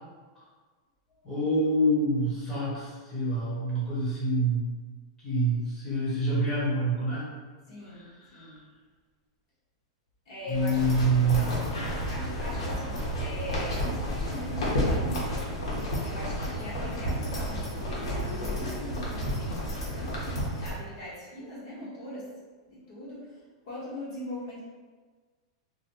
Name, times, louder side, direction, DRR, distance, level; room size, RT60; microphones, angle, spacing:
voice 1, 1.2-4.6 5.2-7.3 7.9-8.5 10.5-11.5, right 1 dB, 15° left, -8 dB, 1.3 m, -26 dB
voice 2, 7.7-8.6 10.3-15.4 16.0-22.3 22.7-23.2 23.7-24.6, left 1 dB, 55° left, -7 dB, 0.9 m, -41 dB
sound 1, 10.5-20.7, equal, 85° left, 1.0 m, -31 dB
2.6 x 2.2 x 3.6 m, 1.4 s
supercardioid pair, 155°, 3 cm